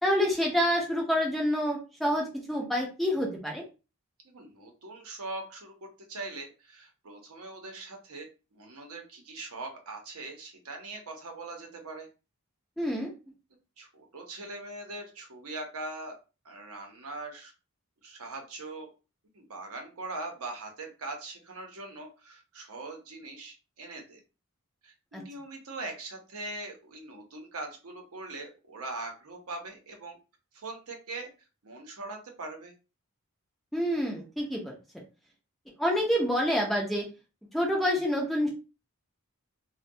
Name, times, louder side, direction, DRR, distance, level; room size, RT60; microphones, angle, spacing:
voice 1, 0.0-3.6 12.8-13.1 25.1-25.2 33.7-34.8 35.8-37.0 37.5-38.5, equal, ahead, -1 dB, 0.4 m, -27 dB
voice 2, 4.2-5.7 6.1-12.1 13.8-16.1 16.4-17.5 18.0-18.9 19.3-24.2 24.8-30.2 30.5-31.3 31.6-32.7, right 2 dB, 75° right, 2 dB, 0.7 m, -41 dB
2.2 x 2.1 x 2.6 m, 0.31 s
head